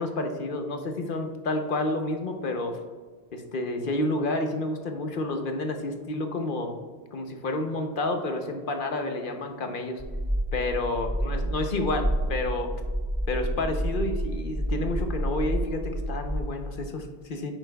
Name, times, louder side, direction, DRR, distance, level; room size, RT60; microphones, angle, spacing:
voice 1, 0.0-2.8 3.3-6.8 7.1-10.0 10.5-12.7 13.3-17.5, left 2 dB, 55° left, 5 dB, 0.9 m, -30 dB
sound 1, 10.0-16.4, right 1 dB, 10° right, 0.9 m, -29 dB
9.6 x 7.6 x 2.3 m, 1.5 s
omnidirectional pair, 1.1 m